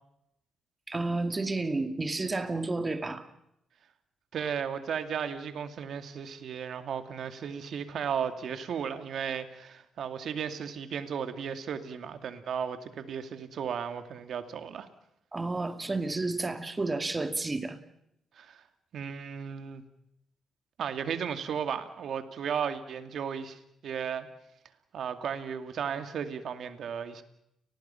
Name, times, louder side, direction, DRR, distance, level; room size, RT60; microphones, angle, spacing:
voice 1, 0.9-3.3 15.3-17.8, right 3 dB, 20° right, 2.4 m, -31 dB
voice 2, 4.3-14.9 18.4-18.6 18.9-19.8 20.8-24.3 24.9-27.2, right 7 dB, 65° right, 2.3 m, -35 dB
30.0 x 19.5 x 5.8 m
cardioid pair, 90°, 0 cm